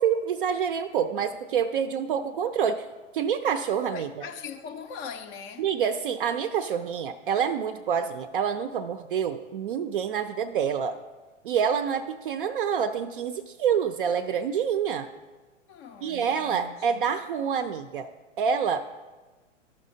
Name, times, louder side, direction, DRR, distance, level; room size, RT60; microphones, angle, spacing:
voice 1, 0.0-2.9 3.1-4.1 5.6-11.0 11.4-15.1 16.0-18.1 18.4-18.8, right 7 dB, 45° right, 0.4 m, -27 dB
voice 2, 3.9-5.7 15.7-17.0, left 6 dB, 20° left, 0.4 m, -41 dB
13.5 x 5.5 x 2.6 m
figure-of-eight pair, 110°, 37 cm